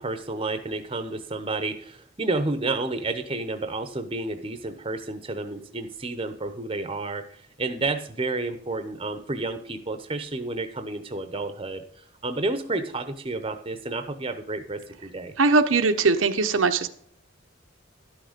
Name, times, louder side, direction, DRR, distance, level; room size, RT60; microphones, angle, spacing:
voice 1, 0.0-7.2 7.6-15.3, right 2 dB, 25° right, 9 dB, 0.8 m, -30 dB
voice 2, 15.4-16.9, right 4 dB, 90° right, 6 dB, 0.9 m, -20 dB
12.0 x 6.4 x 5.1 m, 0.63 s
head